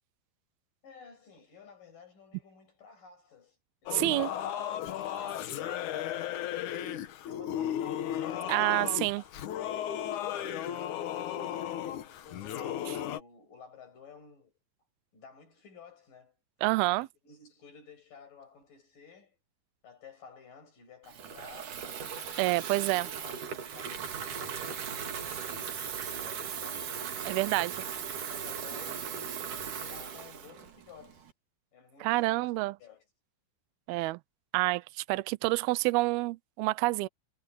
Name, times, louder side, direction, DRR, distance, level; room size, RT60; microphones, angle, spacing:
voice 1, 0.8-3.6 3.8-4.5 4.9-10.1 11.1-14.5 15.1-16.4 17.0-19.4 19.8-21.9 22.3-22.9 23.2-26.9 28.3-31.3 31.7-32.5 32.8-33.1, left 5 dB, 50° left, 9.2 m, -54 dB
Singing / Musical instrument, 3.9-13.2, left 10 dB, 70° left, 1.9 m, -35 dB
voice 2, 3.9-4.3 8.5-9.2 16.6-17.1 22.4-23.1 27.3-27.8 32.0-32.7 33.9-34.2 34.5-37.1, right 21 dB, 85° right, 2.2 m, -28 dB
Water tap faucet / Fill (with liquid), 21.1-31.3, right 7 dB, 50° right, 3.3 m, -38 dB
omnidirectional pair, 5.2 m